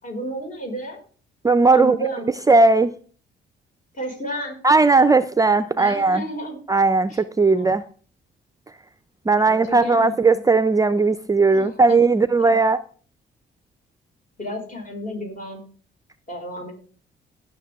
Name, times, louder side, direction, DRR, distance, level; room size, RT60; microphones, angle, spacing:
voice 1, 0.0-1.0 1.7-2.3 3.9-4.6 5.8-6.6 7.1-7.7 9.3-10.4 11.5-12.0 12.4-12.6 14.4-15.6 16.3-16.7, equal, 45° left, 0 dB, 5.4 m, -32 dB
voice 2, 1.4-2.0 2.5-2.9 4.6-6.2 6.7-7.8 9.3-12.8, right 3 dB, 15° right, 13 dB, 0.5 m, -17 dB
17.0 x 6.7 x 3.5 m, 0.41 s
cardioid pair, 90°, 20 cm